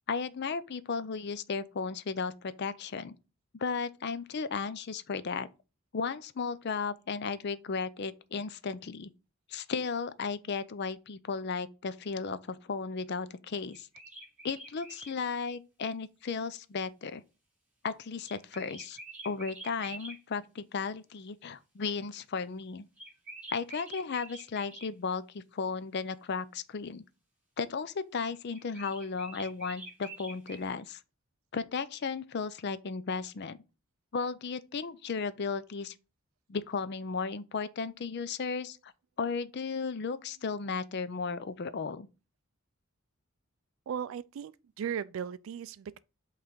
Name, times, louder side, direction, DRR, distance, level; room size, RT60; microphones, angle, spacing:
voice 1, 0.1-3.1 3.5-5.5 5.9-9.1 9.5-13.9 14.4-17.2 17.8-19.0 19.2-22.9 23.5-27.0 27.6-31.0 31.5-33.6 34.1-35.9 36.5-38.9 39.2-42.1, left 5 dB, 50° left, 0.5 m, -35 dB
sound 1, 13.7-15.1 18.2-20.2 23.0-24.9 28.5-30.6, right 2 dB, 5° right, 3.0 m, -47 dB
voice 2, 43.9-46.0, right 8 dB, 65° right, 0.3 m, -37 dB
5.7 x 3.3 x 5.2 m
head